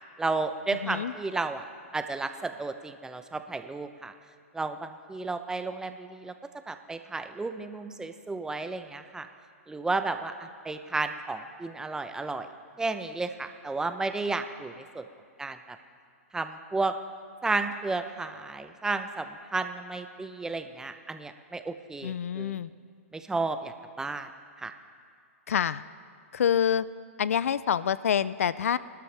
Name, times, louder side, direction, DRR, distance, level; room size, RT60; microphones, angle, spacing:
voice 1, 0.2-1.6 1.9-4.1 4.5-6.3 6.7-9.3 9.7-12.5 12.8-15.1 15.4-15.6 16.3-16.9 17.4-22.6 23.1-24.3 24.6-24.7, right 3 dB, 10° right, 8 dB, 0.8 m, -32 dB
voice 2, 0.8-1.1 22.0-22.7 25.5-25.8 26.3-26.9 27.2-28.8, left 8 dB, 80° left, 17 dB, 0.4 m, -26 dB
26.0 x 12.5 x 3.5 m, 2.2 s
hypercardioid pair, 120°, 8 cm